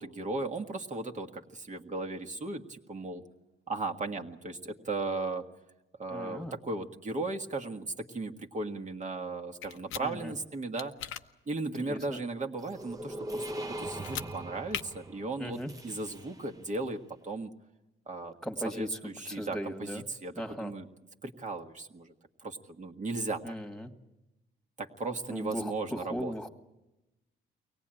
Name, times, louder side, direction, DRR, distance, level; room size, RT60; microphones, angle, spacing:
voice 1, 0.0-3.2 3.7-5.4 6.0-10.9 11.5-17.5 18.1-18.3 18.6-20.9 21.2-22.1 22.4-23.5 24.8-26.3, right 3 dB, 35° right, 3 dB, 1.6 m, -36 dB
voice 2, 6.1-6.5 10.0-10.3 11.8-12.0 15.4-15.7 18.4-18.9 19.3-20.0 20.4-20.7 23.4-23.9 25.3-26.5, equal, 5° left, 5 dB, 1.8 m, -37 dB
sound 1, 9.6-10.0 10.8-11.2 13.9-14.3 14.7-14.8, left 11 dB, 90° left, 0.8 m, -37 dB
sound 2, 12.6-16.6, right 1 dB, 15° right, 1.0 m, -41 dB
23.5 x 18.0 x 8.9 m, 1.0 s
cardioid pair, 90°, 20 cm